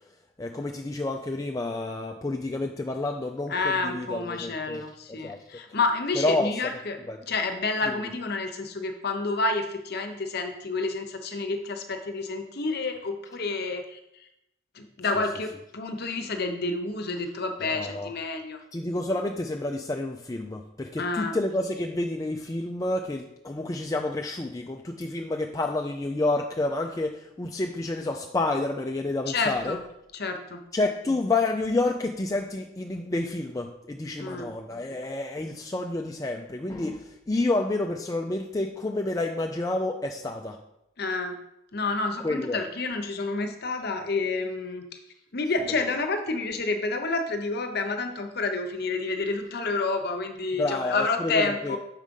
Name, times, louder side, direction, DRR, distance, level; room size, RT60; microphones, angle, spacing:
voice 1, 0.4-5.4 6.2-6.5 7.1-7.2 17.6-18.1 18.7-29.8 30.7-40.6 42.2-42.6 50.6-51.8, left 2 dB, 15° left, 2 dB, 0.3 m, -29 dB
voice 2, 3.5-7.0 7.3-14.0 14.7-18.6 21.0-21.4 29.3-29.8 30.1-30.6 34.2-34.5 41.0-41.4 41.7-44.9 45.3-51.8, left 3 dB, 45° left, 6 dB, 0.8 m, -29 dB
6.5 x 4.9 x 5.3 m, 0.84 s
head